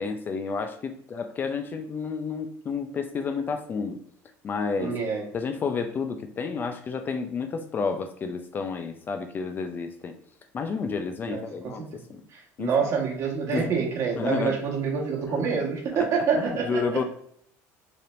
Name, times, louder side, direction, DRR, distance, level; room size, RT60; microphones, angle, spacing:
voice 1, 0.0-4.0 4.4-5.0 5.3-10.2 10.5-12.2 12.6-12.7 13.5-13.8 14.2-14.6 15.3-15.4 16.3-17.0, left 5 dB, 30° left, 7 dB, 0.4 m, -30 dB
voice 2, 4.8-5.2 11.3-11.7 12.6-16.8, right 5 dB, 45° right, -1 dB, 1.3 m, -26 dB
4.2 x 3.4 x 2.5 m, 0.67 s
cardioid pair, 130°, 7 cm